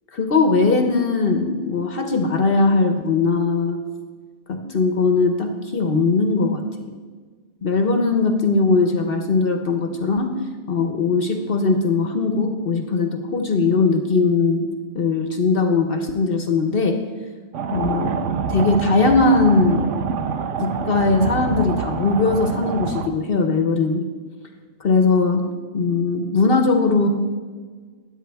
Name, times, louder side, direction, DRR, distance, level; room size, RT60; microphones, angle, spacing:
voice 1, 0.1-3.8 4.5-6.9 7.6-10.3 10.7-14.6 14.9-17.0 17.7-18.2 18.5-19.9 20.6-24.0 24.8-25.4 25.7-27.1, left 3 dB, 55° left, 5 dB, 1.0 m, -19 dB
sound 1, 17.5-23.1, right 6 dB, 85° right, 1.1 m, -26 dB
13.5 x 9.6 x 3.4 m, 1.5 s
omnidirectional pair, 1.2 m